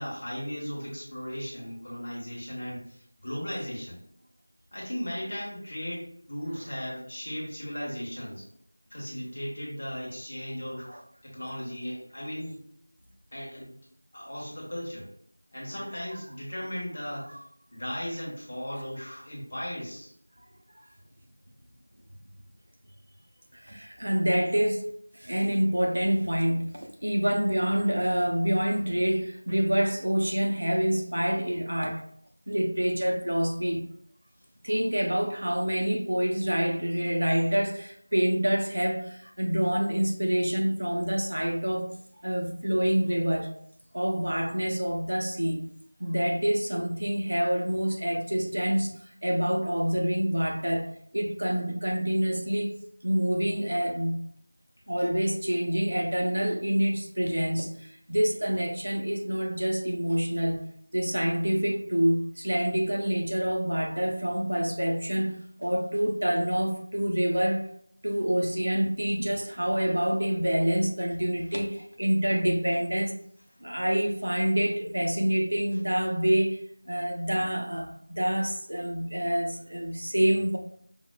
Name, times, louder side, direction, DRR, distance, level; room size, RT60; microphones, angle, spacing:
voice 1, 0.0-4.0 4.7-8.5 8.9-10.9 11.2-12.6 13.0-13.8 14.1-15.1 15.5-17.4 17.7-20.1, equal, 30° left, -5 dB, 1.0 m, -36 dB
voice 2, 23.5-24.9 25.1-32.1 32.5-33.9 34.6-41.9 42.2-43.5 43.9-45.7 46.0-48.9 49.2-52.7 53.0-54.2 54.9-60.6 60.9-67.7 68.0-73.1 73.6-76.6 76.9-80.6, equal, 60° right, 2 dB, 0.7 m, -27 dB
5.2 x 2.3 x 2.2 m, 0.65 s
figure-of-eight pair, 180°, 0 cm